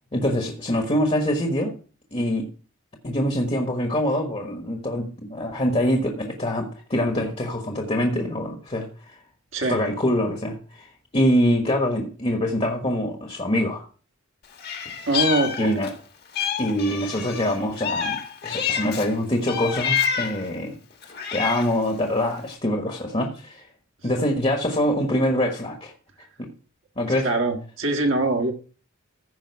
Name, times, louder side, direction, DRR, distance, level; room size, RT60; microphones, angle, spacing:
voice 1, 0.1-1.7 2.1-2.5 3.0-9.2 9.7-13.9 15.6-15.9 16.6-20.8 21.3-23.7 24.0-25.9 26.4-26.5 27.0-27.3, left 1 dB, 30° left, 1.3 m, -24 dB
voice 2, 9.5-9.8 15.1-15.8 27.0-28.5, right 2 dB, 60° right, 1.7 m, -23 dB
Meow, 14.6-16.0 16.3-19.1 19.5-20.5 21.0-21.8, left 7 dB, 50° left, 1.5 m, -28 dB
15.0 x 5.3 x 4.6 m
head